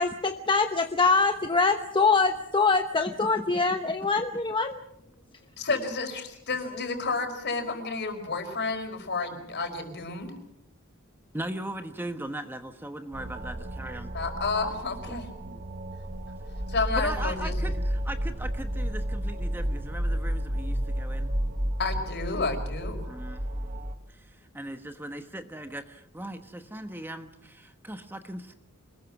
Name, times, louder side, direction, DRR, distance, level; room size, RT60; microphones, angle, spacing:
voice 1, 0.0-4.8, left 4 dB, 25° left, 6 dB, 1.0 m, -24 dB
voice 2, 5.6-10.3 14.1-15.2 16.7-17.6 21.8-23.0, left 3 dB, 55° left, 5 dB, 5.0 m, -30 dB
voice 3, 11.3-14.1 15.1-15.2 16.9-21.3 23.0-23.8 24.1-28.5, right 1 dB, 10° right, 7 dB, 1.1 m, -39 dB
sound 1, 13.1-24.0, equal, 40° right, 1.5 m, -32 dB
26.5 x 21.0 x 5.9 m, 0.76 s
head